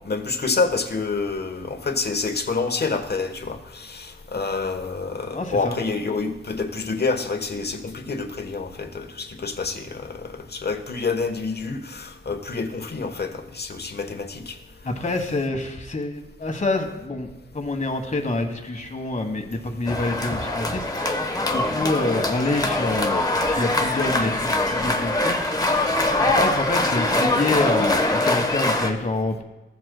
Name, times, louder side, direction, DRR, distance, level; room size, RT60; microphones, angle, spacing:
voice 1, 0.1-14.6, left 4 dB, 50° left, 6 dB, 1.1 m, -28 dB
voice 2, 5.3-5.8 14.8-21.1 21.5-25.6 26.2-29.4, left 2 dB, 35° left, 5 dB, 1.3 m, -27 dB
sound 1, 19.9-28.9, left 2 dB, 20° left, 1.1 m, -23 dB
15.5 x 7.8 x 2.2 m, 1.1 s
wide cardioid pair, 80°, 21 cm